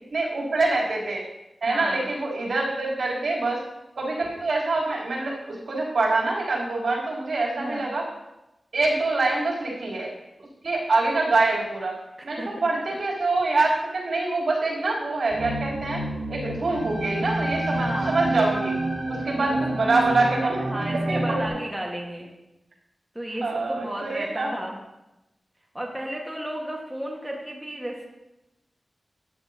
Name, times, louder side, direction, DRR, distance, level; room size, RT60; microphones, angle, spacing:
voice 1, 0.1-1.2 1.6-3.6 4.0-8.1 8.7-10.1 10.6-12.0 12.2-16.0 16.3-18.7 19.1-20.7 21.1-21.4 23.4-24.5, right 3 dB, 75° right, -4 dB, 3.4 m, -25 dB
voice 2, 1.7-2.0 7.6-7.9 12.4-12.5 17.8-18.2 19.4-19.6 20.2-20.4 20.7-22.3 23.1-24.8 25.7-28.1, right 1 dB, 10° right, -2 dB, 1.6 m, -33 dB
sound 1, 15.3-21.5, right 2 dB, 55° right, 3.1 m, -28 dB
13.5 x 9.6 x 2.9 m, 0.95 s
wide cardioid pair, 95°, 0 cm